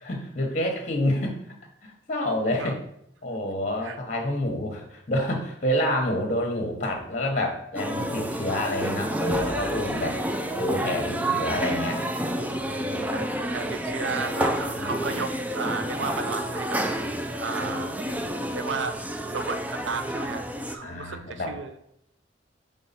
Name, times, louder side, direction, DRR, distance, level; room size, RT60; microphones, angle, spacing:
voice 1, 0.0-1.3 1.8-2.8 3.2-10.1 10.5-12.0 12.6-13.3 14.7-14.9 17.6-17.7 18.0-18.3 20.8-21.5, left 1 dB, 40° left, 2 dB, 1.0 m, -28 dB
sound 1, 7.7-20.7, right 1 dB, 10° right, 0.4 m, -29 dB
voice 2, 9.9-10.4 13.1-16.8 17.4-17.9 18.5-19.0 19.3-21.8, right 4 dB, 90° right, 9 dB, 0.6 m, -33 dB
6.3 x 3.7 x 4.1 m, 0.76 s
head